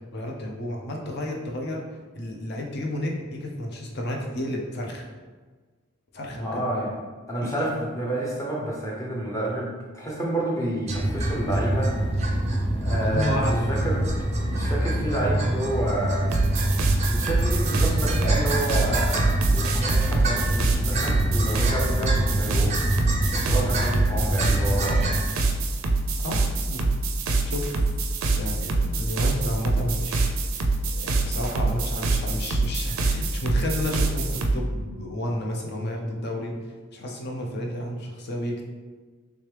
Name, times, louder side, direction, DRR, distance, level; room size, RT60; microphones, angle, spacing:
voice 1, 0.1-5.1 6.1-6.6 7.4-7.5 13.0-13.7 26.2-26.4 26.7-26.8 27.5-27.8 28.4-30.3 31.0-36.5 36.9-38.6, left 1 dB, 50° left, 0 dB, 0.6 m, -31 dB
voice 2, 6.4-7.0 7.3-11.9 12.8-14.0 14.5-16.3 17.1-19.2 19.5-22.9 23.5-25.3, right 1 dB, 15° left, -3 dB, 0.7 m, -29 dB
sound 1, 10.9-25.2, right 1 dB, 35° right, 0.5 m, -25 dB
sound 2, 16.3-34.5, right 3 dB, 90° right, 0.4 m, -25 dB
3.4 x 3.1 x 3.3 m, 1.4 s
head